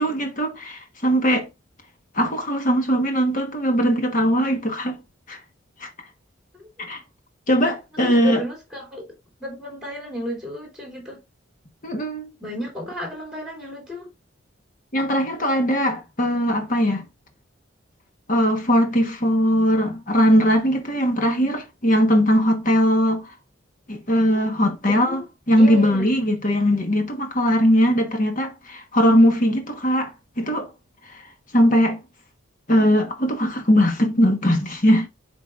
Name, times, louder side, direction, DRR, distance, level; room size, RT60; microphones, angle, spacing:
voice 1, 0.0-1.5 2.1-5.0 5.3-5.4 5.8-5.9 6.9-7.0 7.5-8.4 11.8-12.3 14.9-17.1 18.3-23.3 23.9-30.1 30.4-30.7 31.5-32.0 32.7-35.1, equal, 40° left, 1.2 m, -20 dB
voice 2, 8.0-9.0 9.4-11.2 12.4-14.1 24.9-25.2 25.6-26.1, equal, 5° right, 2.7 m, -33 dB
9.9 x 3.9 x 2.4 m
head